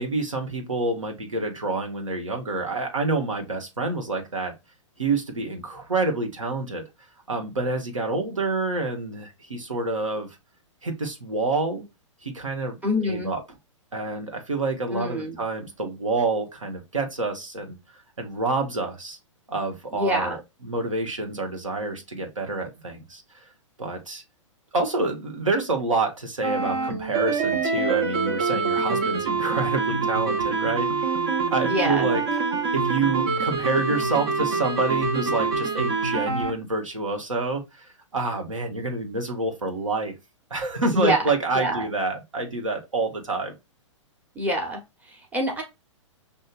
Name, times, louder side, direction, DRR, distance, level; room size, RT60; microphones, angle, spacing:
voice 1, 0.0-4.5 5.0-6.8 7.3-10.3 10.8-11.8 12.2-12.8 13.0-13.4 13.9-17.8 18.2-19.2 19.5-20.4 20.6-23.5 23.8-24.2 24.7-31.2 31.5-32.2 32.7-40.1 40.5-43.5, right 3 dB, 80° right, 1.4 m, -27 dB
voice 2, 12.8-13.3 14.9-15.4 19.9-20.4 31.6-32.1 40.9-41.9 44.3-45.6, equal, 10° right, 1.1 m, -26 dB
sound 1, 26.4-36.5, right 4 dB, 50° right, 1.2 m, -25 dB
6.5 x 2.7 x 2.4 m
figure-of-eight pair, 115°, 16 cm